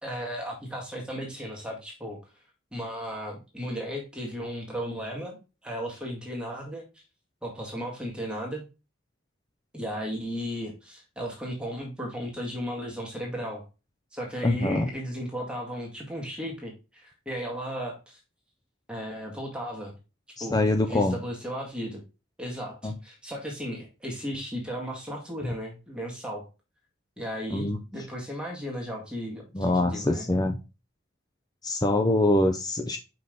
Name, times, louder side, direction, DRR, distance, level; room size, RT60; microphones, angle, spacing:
voice 1, 0.0-2.2 2.7-7.0 7.4-8.6 9.7-13.6 14.1-18.2 18.9-20.0 20.4-22.0 22.4-26.4 27.2-30.3, equal, 5° right, -2 dB, 2.0 m, -35 dB
voice 2, 14.4-14.9 20.4-21.2 22.8-22.9 25.4-25.5 27.5-27.8 29.5-30.6 31.6-33.0, left 1 dB, 20° left, 6 dB, 0.5 m, -24 dB
5.8 x 5.4 x 3.9 m, 0.29 s
head